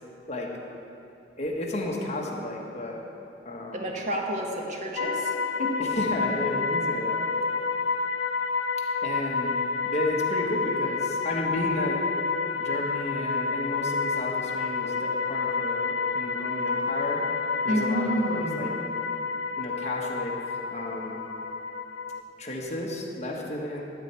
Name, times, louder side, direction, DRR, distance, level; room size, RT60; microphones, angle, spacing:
voice 1, 1.4-3.0 3.4-3.8 5.8-7.2 9.0-9.6 9.8-12.0 12.6-17.2 17.6-18.7 19.6-21.2 22.4-23.8, left 1 dB, 35° left, -1 dB, 1.3 m, -32 dB
voice 2, 3.7-5.9 17.7-18.7, equal, 40° right, 0 dB, 1.3 m, -30 dB
sound 1, 5.0-22.2, left 4 dB, 70° left, 0.5 m, -29 dB
13.0 x 4.5 x 8.1 m, 2.8 s
head